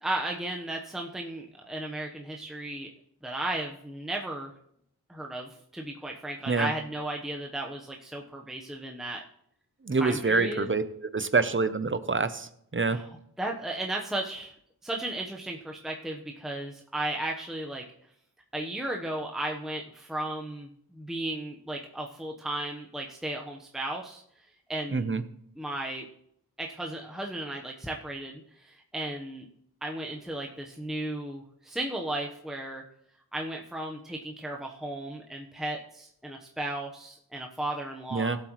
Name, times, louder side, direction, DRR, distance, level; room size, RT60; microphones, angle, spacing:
voice 1, 0.0-2.9 3.2-4.5 5.1-9.2 9.9-10.7 12.9-13.1 13.4-14.5 14.8-17.8 18.5-24.2 24.7-25.1 25.6-26.0 26.6-29.5 29.8-32.8 33.3-38.4, right 1 dB, ahead, 0 dB, 1.0 m, -35 dB
voice 2, 9.8-10.8 11.1-13.0 24.9-25.2 38.1-38.4, right 4 dB, 30° right, 12 dB, 0.8 m, -26 dB
18.0 x 8.0 x 3.1 m, 0.71 s
wide cardioid pair, 75°, 38 cm